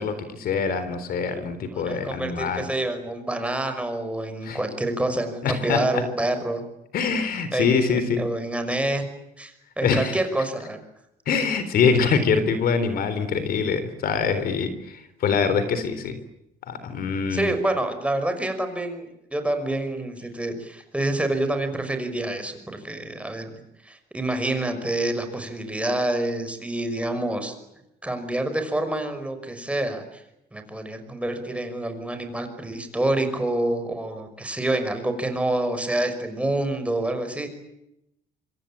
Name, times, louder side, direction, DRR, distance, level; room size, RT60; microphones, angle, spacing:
voice 1, 0.0-2.7 4.4-4.6 5.4-6.0 6.9-8.3 9.8-10.2 11.3-16.2 16.7-17.5, left 5 dB, 60° left, 12 dB, 3.8 m, -24 dB
voice 2, 1.7-6.6 7.5-9.0 9.4-10.8 17.3-23.5 23.8-27.5 28.0-30.2 30.5-37.5, right 1 dB, 5° right, 7 dB, 5.9 m, -27 dB
26.0 x 25.5 x 8.8 m, 0.84 s
cardioid pair, 110°, 17 cm